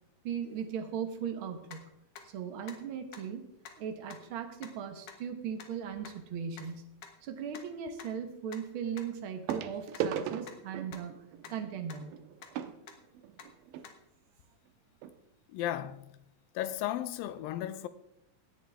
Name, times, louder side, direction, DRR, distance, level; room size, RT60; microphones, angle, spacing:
voice 1, 0.2-1.8 2.2-3.5 3.8-6.8 7.2-11.2 11.5-12.1, right 7 dB, 65° right, 1.3 m, -38 dB
sound 1, 1.7-1.8 2.2-2.3 2.7-2.8 3.1-3.2 3.6-3.7 4.1-4.2 4.6-4.7 5.1-5.2 5.6-5.7 6.0-6.1 6.6-6.7 7.0-7.1 7.5-7.6 8.0-8.1 8.5-8.6 9.0-9.1 9.5-9.6 9.9-10.0 10.5-10.6 10.9-11.0 11.4-11.5 11.9-12.0 12.4-12.5 12.9-13.0 13.4-13.5 13.8-13.9, left 8 dB, 65° left, 2.7 m, -47 dB
sound 2, 5.9-6.2 7.9-8.0 9.5-13.9 14.7-14.8 15.0-15.2 15.7-15.8, right 9 dB, 85° right, 2.5 m, -39 dB
voice 2, 15.5-16.1 16.6-17.9, left 12 dB, 90° left, 2.5 m, -34 dB
17.5 x 10.0 x 3.5 m
omnidirectional pair, 4.1 m